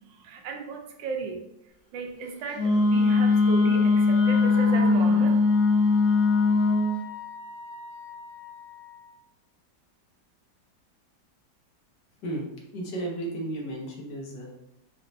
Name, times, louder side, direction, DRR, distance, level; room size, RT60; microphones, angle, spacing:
voice 1, 0.0-1.4 1.9-5.4, right 5 dB, 80° right, 3 dB, 1.3 m, -34 dB
Wind instrument woodwind instrument, 2.5-6.9, left 4 dB, 45° left, 1.2 m, -21 dB
Wind instrument woodwind instrument 2, 5.4-9.3, left 6 dB, 10° right, 1.1 m, -43 dB
voice 2, 12.7-14.5, right 2 dB, 70° left, 0 dB, 1.4 m, -33 dB
4.1 x 3.6 x 2.6 m, 0.82 s
omnidirectional pair, 2.0 m